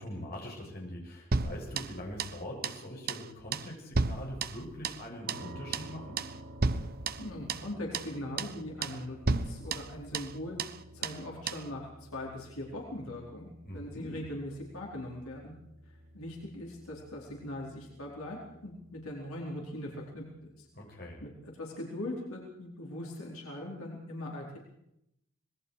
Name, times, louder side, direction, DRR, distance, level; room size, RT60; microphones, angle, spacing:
voice 1, 0.0-6.2 13.6-14.2 20.7-21.2, left 1 dB, 45° left, -1 dB, 7.3 m, -43 dB
sound 1, 1.3-2.4 2.6-2.8 3.1-3.3 3.5-5.0 5.3-5.5 5.7-5.9 6.2-6.4 6.6-7.7 7.9-8.1 8.4-8.6 8.8-9.0 9.3-10.3 10.6-10.8 11.0-11.2 11.5-11.7, right 3 dB, 45° right, 0.9 m, -33 dB
sound 2, 5.3-20.1, equal, 75° right, 6.3 m, -52 dB
voice 2, 7.2-10.6 10.9-15.5 16.1-20.7 21.2-24.6, left 1 dB, 85° left, -2 dB, 4.5 m, -40 dB
26.0 x 20.5 x 4.9 m, 0.79 s
head